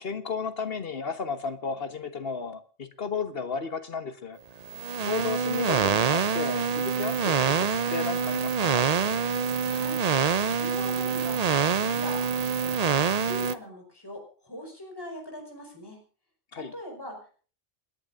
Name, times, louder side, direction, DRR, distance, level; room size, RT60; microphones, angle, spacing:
voice 1, 0.0-4.4 5.0-8.9 16.5-16.7, left 5 dB, 55° left, 10 dB, 1.5 m, -33 dB
sound 1, 4.6-13.5, right 6 dB, 40° right, 0.7 m, -26 dB
voice 2, 9.6-10.0 10.4-11.4 11.7-12.9 13.2-16.0 16.5-17.3, left 1 dB, 20° left, 2 dB, 4.9 m, -41 dB
29.0 x 11.0 x 2.6 m, 0.39 s
omnidirectional pair, 1.2 m